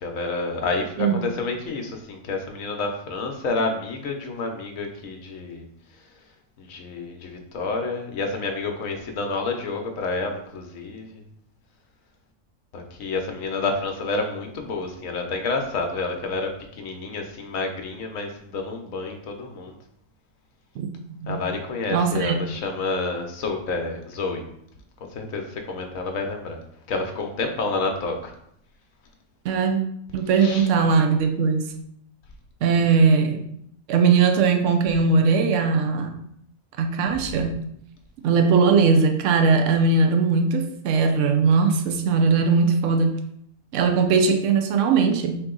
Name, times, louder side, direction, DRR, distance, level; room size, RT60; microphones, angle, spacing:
voice 1, 0.0-5.7 6.6-11.1 12.7-19.8 21.3-24.4 25.1-26.6 26.9-28.3 30.4-30.7, left 3 dB, 80° left, 3 dB, 1.2 m, -29 dB
voice 2, 21.9-22.4 29.4-29.8 30.1-31.7 32.6-33.4 33.9-36.1 36.8-37.6 38.2-43.2 43.7-45.4, right 5 dB, 70° right, 5 dB, 0.9 m, -20 dB
4.4 x 2.8 x 3.8 m, 0.72 s
omnidirectional pair, 1.4 m